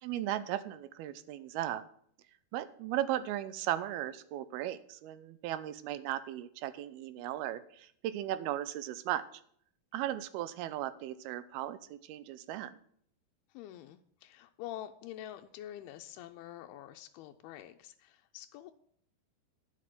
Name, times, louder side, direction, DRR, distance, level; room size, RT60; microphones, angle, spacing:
voice 1, 0.0-1.8 2.5-9.4 9.9-12.8, right 13 dB, 85° right, 14 dB, 2.6 m, -36 dB
voice 2, 13.5-18.7, left 12 dB, 90° left, 6 dB, 2.5 m, -47 dB
10.0 x 6.4 x 7.5 m, 0.62 s
omnidirectional pair, 4.4 m